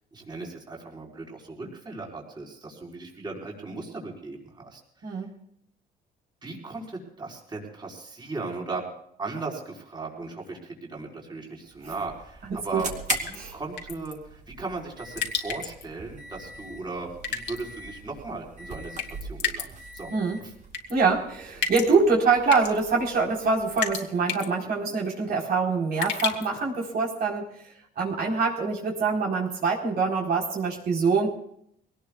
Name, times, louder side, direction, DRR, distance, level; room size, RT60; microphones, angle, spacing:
voice 1, 0.1-5.1 6.4-8.9 9.2-20.1 20.4-20.5, right 3 dB, 25° right, -1 dB, 4.5 m, -37 dB
sound 1, 11.6-24.0, right 4 dB, 40° right, 2.7 m, -42 dB
sound 2, 13.1-13.4 13.8-14.1 15.2-15.8 17.2-17.6 19.0-19.7 19.9-20.0 20.7-20.9 21.6-21.9 22.5-22.8 23.8-24.0 24.3-24.5 26.0-26.6, left 7 dB, 70° left, 2.5 m, -30 dB
voice 2, 20.9-27.5 28.0-31.3, right 4 dB, 60° right, -2 dB, 4.2 m, -24 dB
24.0 x 18.5 x 2.4 m, 0.69 s
cardioid pair, 135°, 18 cm